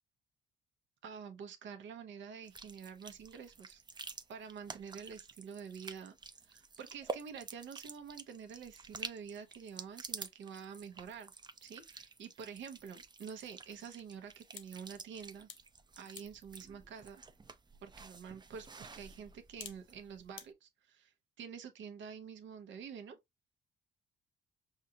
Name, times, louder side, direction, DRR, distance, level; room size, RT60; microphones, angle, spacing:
voice 1, 1.0-3.8 4.3-6.2 6.4-11.3 11.6-15.5 16.0-17.2 17.8-23.2, right 7 dB, 70° right, 0.9 m, -48 dB
sound 1, 2.4-20.3, right 4 dB, 20° right, 0.5 m, -50 dB
sound 2, 11.1-20.5, left 8 dB, 75° left, 0.9 m, -58 dB
5.5 x 2.5 x 2.8 m
cardioid pair, 90°, 20 cm